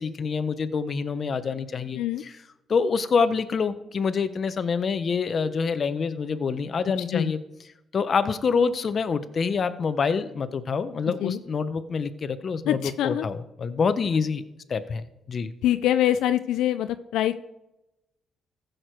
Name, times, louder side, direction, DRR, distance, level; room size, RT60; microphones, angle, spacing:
voice 1, 0.0-2.4 2.7-7.4 7.9-14.4 14.7-15.5, left 5 dB, 45° left, 12 dB, 0.7 m, -26 dB
voice 2, 12.7-13.3 15.6-17.3, left 12 dB, 85° left, 11 dB, 0.4 m, -24 dB
15.0 x 6.6 x 4.6 m, 0.93 s
cardioid pair, 90°, 0 cm